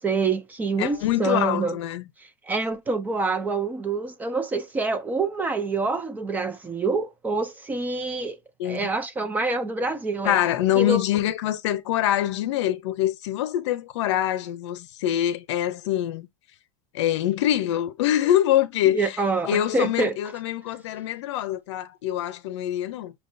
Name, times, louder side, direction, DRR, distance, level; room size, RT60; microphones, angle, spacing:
voice 1, 0.0-1.8 2.2-8.4 8.6-10.4 10.8-11.0 18.9-20.1, right 3 dB, 10° right, 0.4 m, -26 dB
voice 2, 0.8-2.1 8.6-8.9 10.2-16.3 16.9-23.1, left 12 dB, 70° left, 0.7 m, -24 dB
6.1 x 2.3 x 2.6 m
supercardioid pair, 160°, 15 cm